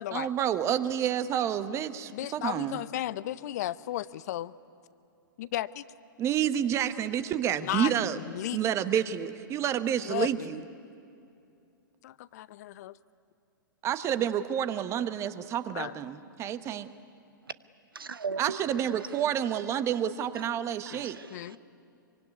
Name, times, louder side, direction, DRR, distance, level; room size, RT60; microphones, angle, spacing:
voice 1, 0.1-2.8 6.2-8.2 8.5-10.6 13.8-16.9 18.4-21.2, right 10 dB, 25° right, 1.1 m, -29 dB
voice 2, 2.1-4.5 5.4-5.8 7.6-8.6 10.0-10.6 12.0-13.0 15.7-15.9 20.9-21.0 21.3-21.6, left 14 dB, 50° left, 0.6 m, -35 dB
voice 3, 17.9-18.6 18.9-19.2 20.8-21.6, right 5 dB, 85° right, 0.9 m, -38 dB
24.5 x 24.0 x 9.6 m
figure-of-eight pair, 115°, 11 cm